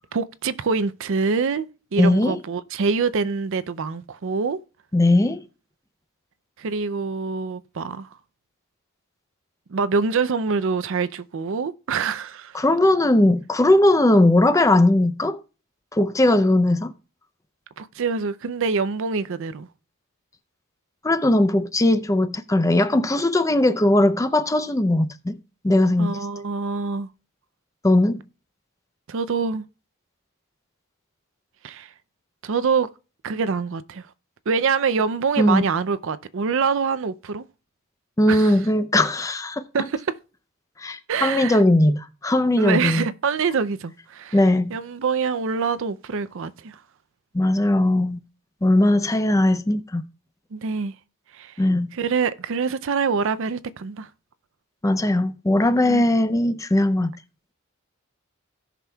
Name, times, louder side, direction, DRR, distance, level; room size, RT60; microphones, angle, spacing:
voice 1, 0.1-4.6 6.6-8.1 9.7-12.6 17.8-19.7 26.0-27.1 29.1-29.6 31.6-31.9 32.4-32.9 33.2-34.1 34.5-37.4 38.3-38.5 39.7-40.1 41.1-41.6 42.6-44.4 44.7-46.8 50.5-50.9 51.3-51.5 51.9-54.1 55.8-56.0, right 5 dB, 65° right, 0.5 m, -25 dB
voice 2, 2.0-2.4 4.9-5.4 12.5-15.4 15.9-16.9 21.0-25.4 25.6-26.2 27.8-28.2 35.4-35.6 38.2-39.9 40.8-43.1 44.3-44.7 47.3-48.2 48.6-50.0 51.6-51.9 54.8-57.1, left 1 dB, 15° left, 0.5 m, -19 dB
17.0 x 6.0 x 2.3 m
head